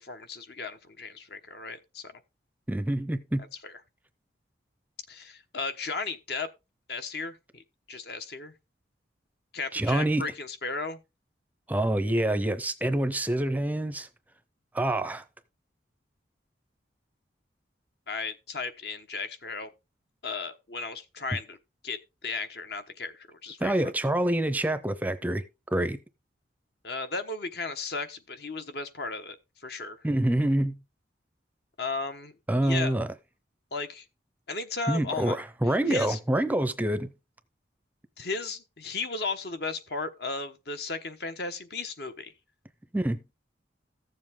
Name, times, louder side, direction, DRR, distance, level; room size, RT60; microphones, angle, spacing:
voice 1, 0.0-2.1 3.6-3.7 5.1-6.5 6.9-8.5 9.5-11.0 18.1-19.7 20.2-21.6 21.8-23.9 26.8-29.4 29.6-30.1 31.8-32.3 32.6-33.0 33.7-34.0 34.5-35.4 35.9-36.2 38.2-42.3, left 4 dB, 55° left, 1.2 m, -35 dB
voice 2, 2.7-3.4 9.7-10.2 11.7-14.1 14.7-15.2 23.6-25.4 25.7-26.0 30.0-30.8 32.5-33.1 34.9-37.1 42.9-43.2, right 1 dB, 10° right, 0.6 m, -26 dB
14.5 x 7.4 x 3.7 m
head